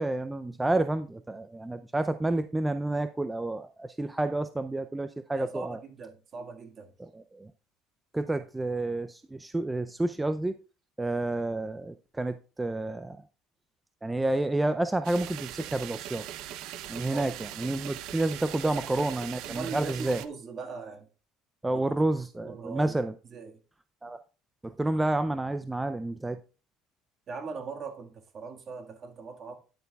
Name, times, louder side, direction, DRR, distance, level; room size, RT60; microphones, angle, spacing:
voice 1, 0.0-5.8 7.1-7.5 8.1-10.5 11.0-13.2 14.0-16.3 16.9-20.2 21.6-23.1 24.0-24.2 24.6-26.4, right 2 dB, 10° right, 0.4 m, -29 dB
voice 2, 5.3-6.9 17.1-17.3 18.6-19.1 19.4-21.1 21.7-21.8 22.4-23.0 23.2-23.6 27.3-29.6, right 5 dB, 40° right, 1.7 m, -40 dB
sound 1, 15.0-20.3, right 12 dB, 70° right, 0.7 m, -40 dB
10.5 x 9.3 x 2.3 m
cardioid pair, 120°, 0 cm